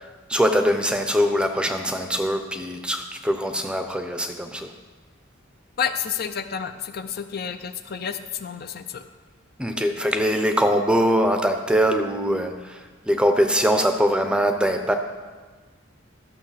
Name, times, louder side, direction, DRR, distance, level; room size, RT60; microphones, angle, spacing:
voice 1, 0.3-4.7 9.6-12.8 13.1-15.0, equal, 5° right, 6 dB, 0.6 m, -22 dB
voice 2, 5.8-9.0, left 7 dB, 50° left, 8 dB, 0.5 m, -30 dB
12.5 x 6.5 x 5.7 m, 1.4 s
head